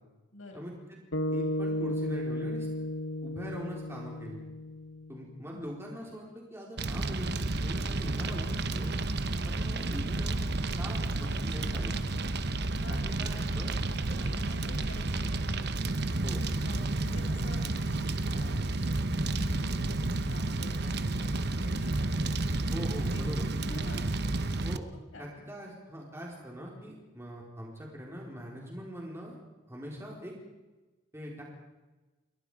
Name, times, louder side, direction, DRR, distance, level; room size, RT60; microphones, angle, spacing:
voice 1, 0.3-0.7 5.5-5.6 12.7-13.6 13.9-15.8 16.6-22.5 23.1-23.3 23.6-24.1 25.1-25.3, left 2 dB, 90° left, 1 dB, 7.0 m, -47 dB
sound 1, 1.1-5.5, left 1 dB, 75° left, 1.1 m, -34 dB
voice 2, 1.3-2.7 3.2-4.4 5.1-8.9 9.4-10.4 10.8-12.0 12.9-13.7 14.1-14.3 16.2-16.4 22.6-23.5 24.6-24.8 25.2-29.4 29.7-30.3 31.1-31.4, equal, 15° right, -2 dB, 4.4 m, -42 dB
Fire, 6.8-24.8, right 2 dB, 55° right, 1.1 m, -31 dB
29.0 x 23.0 x 5.1 m, 1.2 s
head